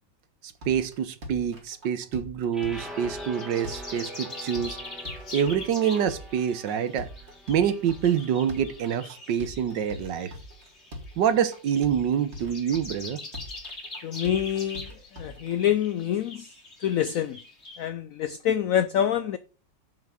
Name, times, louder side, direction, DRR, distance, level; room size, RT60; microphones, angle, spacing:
sound 1, 0.6-15.5, left 1 dB, 35° right, 2.2 m, -43 dB
voice 1, 0.7-4.8 5.3-7.1 7.5-10.3 11.2-13.2, right 8 dB, 75° right, 1.6 m, -26 dB
sound 2, 2.5-8.8, equal, ahead, 1.4 m, -43 dB
sound 3, 2.7-17.9, left 2 dB, 35° left, 2.7 m, -43 dB
voice 2, 14.0-14.9 15.2-16.5 16.8-17.4 17.8-19.4, left 10 dB, 85° left, 0.7 m, -26 dB
7.2 x 6.1 x 5.7 m
omnidirectional pair, 2.0 m